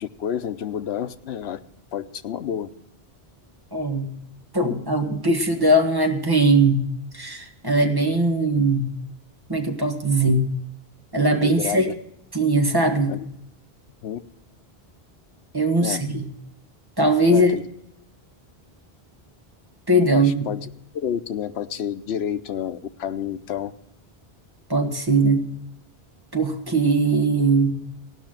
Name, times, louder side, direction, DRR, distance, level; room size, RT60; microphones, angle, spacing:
voice 1, 0.0-1.6 1.9-2.7 11.4-11.9 13.1-13.3 14.0-14.2 15.8-16.0 17.3-17.7 20.1-20.7 20.9-23.7, left 9 dB, 85° left, 11 dB, 1.0 m, -29 dB
voice 2, 3.7-4.1 4.5-8.9 9.5-10.5 11.1-11.9 12.3-13.2 15.5-16.3 17.0-17.5 19.9-20.4 24.7-25.5 26.3-27.7, right 2 dB, 20° right, 2 dB, 1.5 m, -20 dB
16.0 x 5.9 x 8.8 m, 0.73 s
omnidirectional pair, 1.0 m